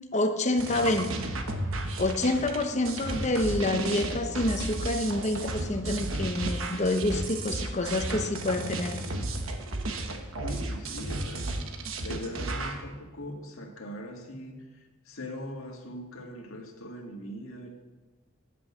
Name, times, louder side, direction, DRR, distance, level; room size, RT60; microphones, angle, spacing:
voice 1, 0.1-1.1 2.0-9.0, left 2 dB, 35° left, 6 dB, 0.9 m, -27 dB
sound 1, 0.6-12.8, right 2 dB, 85° right, 1.1 m, -33 dB
voice 2, 10.4-11.7 12.0-17.7, equal, 90° left, 1 dB, 1.8 m, -41 dB
10.0 x 6.3 x 7.3 m, 1.2 s
head